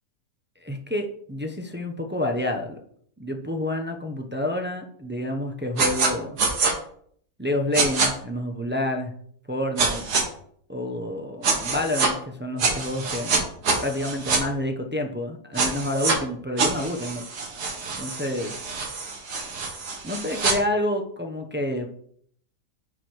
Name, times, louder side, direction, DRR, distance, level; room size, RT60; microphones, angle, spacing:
voice 1, 0.6-2.8 3.2-6.4 7.4-9.1 9.5-10.1 10.7-13.5 13.8-17.2 18.0-18.5 20.0-21.9, left 1 dB, 15° right, 2 dB, 0.4 m, -28 dB
sound 1, 5.8-6.1 6.4-6.7 7.7-8.1 9.8-10.2 11.4-12.1 12.6-14.4 15.6-16.2 16.6-20.6, right 4 dB, 75° right, 2.0 m, -25 dB
9.7 x 4.5 x 4.8 m, 0.62 s
omnidirectional pair, 1.7 m